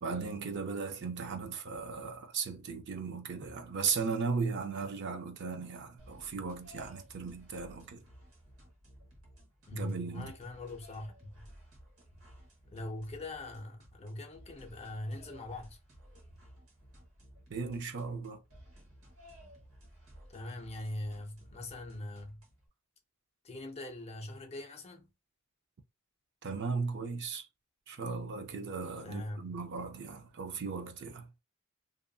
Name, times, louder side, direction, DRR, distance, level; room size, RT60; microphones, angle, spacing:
voice 1, 0.0-8.0 9.7-10.3 17.5-18.4 26.4-27.5 27.9-31.3, right 5 dB, 50° right, 0.4 m, -37 dB
sound 1, 6.0-22.7, equal, 70° right, 1.1 m, -56 dB
voice 2, 9.7-11.4 12.7-15.8 20.3-22.4 23.4-25.1 29.0-29.6, left 1 dB, 30° left, 0.5 m, -42 dB
2.7 x 2.5 x 2.3 m
head